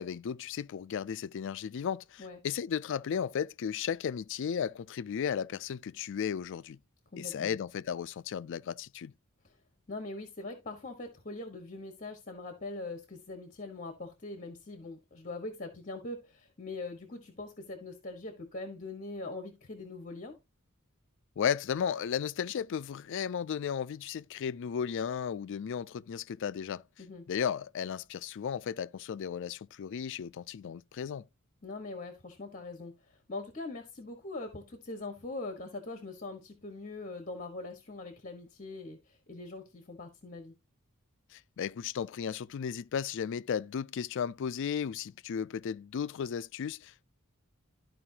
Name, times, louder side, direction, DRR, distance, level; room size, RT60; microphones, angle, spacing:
voice 1, 0.0-6.8 7.2-9.1 21.4-26.8 27.3-31.2 41.3-47.1, left 7 dB, 60° left, 0.3 m, -35 dB
voice 2, 7.1-7.6 9.4-9.6 9.9-20.4 27.0-27.3 31.6-40.5, left 2 dB, 40° left, 1.3 m, -42 dB
13.0 x 4.8 x 2.8 m
head